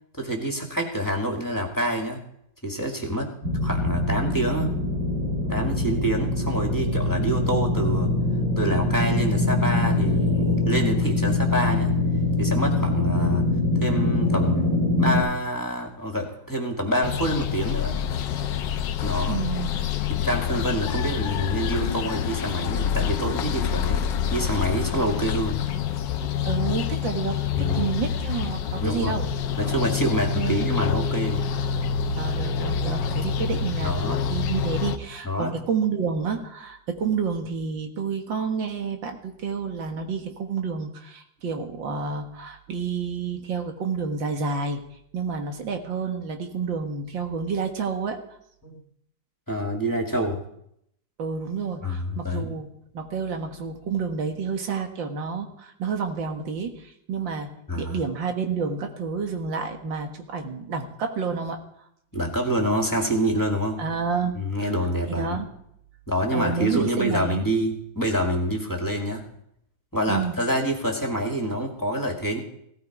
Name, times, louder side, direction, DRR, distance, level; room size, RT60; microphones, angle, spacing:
voice 1, 0.1-2.2 2.6-3.3 3.6-4.7 5.5-8.1 8.6-11.9 12.4-13.4 13.8-14.7 15.0-18.0 19.0-19.4 20.1-24.0 24.3-25.7 27.5-27.9 28.8-29.2 29.6-31.4 33.8-34.2 35.2-35.5 48.6-48.8 49.5-50.4 51.8-52.5 57.7-58.0 62.1-63.8 64.3-65.4 66.1-69.3 69.9-72.4, right 1 dB, 10° left, 1 dB, 2.0 m, -27 dB
sound 1, 3.4-15.2, left 2 dB, 50° right, 8.5 m, -23 dB
sound 2, 17.0-35.0, left 8 dB, 80° left, 1.5 m, -27 dB
voice 2, 19.3-19.8 26.4-29.3 30.4-30.7 32.2-44.8 45.1-48.2 51.2-61.6 63.8-64.7 65.1-65.5 66.3-67.5 70.1-70.3, right 5 dB, 85° right, 4 dB, 2.3 m, -29 dB
17.0 x 13.5 x 4.8 m, 0.74 s
omnidirectional pair, 2.0 m